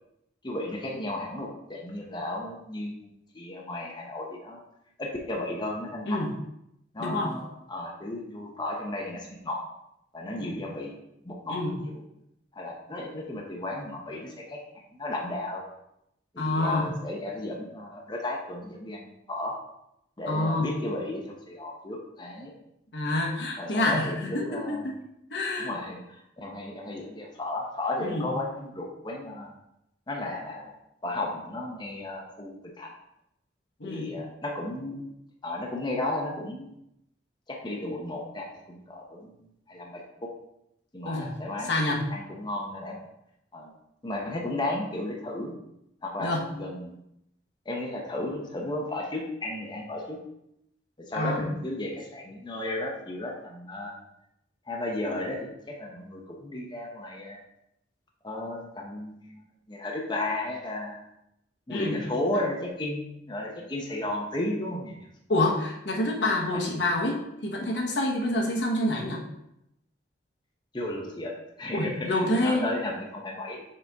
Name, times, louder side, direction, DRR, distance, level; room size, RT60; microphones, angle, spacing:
voice 1, 0.4-3.1 3.3-4.6 5.0-6.2 6.9-9.6 10.1-10.9 11.2-12.0 12.5-14.6 15.0-15.6 16.3-19.5 20.2-22.5 23.6-24.9 25.6-29.5 30.1-30.8 31.0-32.9 33.8-35.1 35.4-36.7 37.5-39.3 39.7-40.3 40.9-43.0 43.5-43.7 44.0-45.5 46.0-47.0 47.7-50.2 51.0-54.0 54.7-57.4 58.2-59.4 59.7-61.0 61.7-65.0 66.5-66.6 70.7-71.3 71.6-73.6, left 1 dB, 25° left, -1 dB, 0.8 m, -34 dB
voice 2, 7.0-7.4 10.4-10.6 11.5-11.8 16.4-16.9 20.3-20.7 22.9-24.9 25.3-25.7 28.0-28.3 33.8-34.1 41.0-41.3 41.7-42.0 46.2-46.5 51.1-51.5 61.7-62.0 65.3-69.2 71.7-72.6, left 1 dB, 70° left, 0 dB, 1.1 m, -27 dB
6.4 x 4.3 x 3.5 m, 0.81 s
head